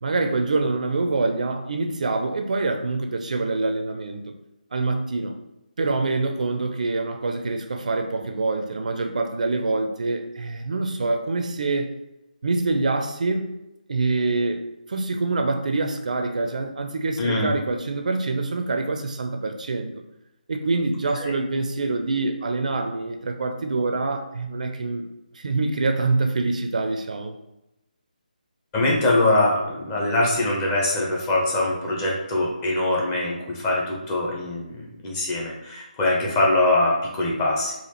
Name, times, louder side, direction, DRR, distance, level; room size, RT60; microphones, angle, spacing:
voice 1, 0.0-4.3 4.7-5.4 5.8-11.9 12.4-13.5 13.9-14.6 14.9-19.9 20.5-25.0 25.3-27.3, right 3 dB, 55° right, 5 dB, 0.4 m, -25 dB
voice 2, 17.2-17.5 21.2-21.3 28.7-37.7, left 2 dB, 15° left, -3 dB, 0.6 m, -23 dB
4.1 x 2.4 x 2.8 m, 0.91 s
figure-of-eight pair, 155°, 5 cm